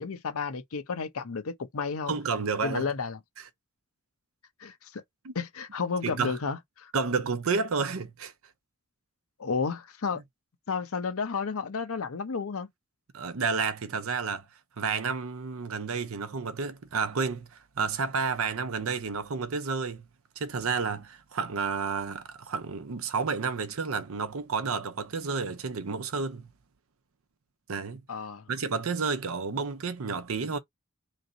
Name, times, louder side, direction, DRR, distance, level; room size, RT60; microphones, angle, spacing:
voice 1, 0.0-2.1 2.6-3.2 4.6-5.0 5.3-6.9 9.4-10.2 10.7-12.7 28.1-28.5, left 5 dB, 85° left, 0.7 m, -32 dB
voice 2, 2.1-2.9 5.2-5.3 6.0-6.4 6.9-8.3 13.1-14.4 14.8-20.0 20.4-26.5 27.7-28.0 28.5-30.6, right 5 dB, 80° right, 0.6 m, -30 dB
3.2 x 2.6 x 3.8 m
head